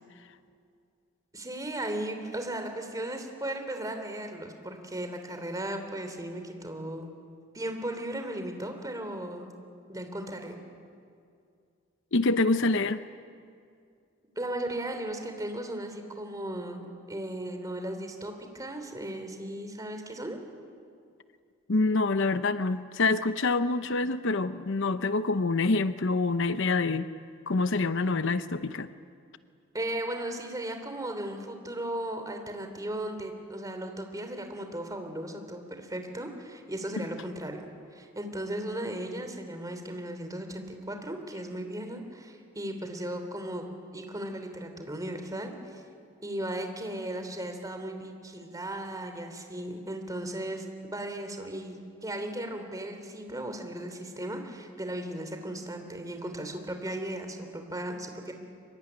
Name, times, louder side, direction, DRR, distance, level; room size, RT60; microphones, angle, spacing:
voice 1, 1.3-7.1 7.5-9.5 9.9-10.6 14.3-16.8 17.1-20.4 29.7-37.6 37.9-43.7 43.9-45.8 46.2-58.3, right 1 dB, 15° right, 5 dB, 3.2 m, -36 dB
voice 2, 12.1-13.0 21.7-27.1 27.5-28.9 37.0-37.1, left 3 dB, 60° left, 11 dB, 0.8 m, -26 dB
25.0 x 23.5 x 10.0 m, 2.3 s
head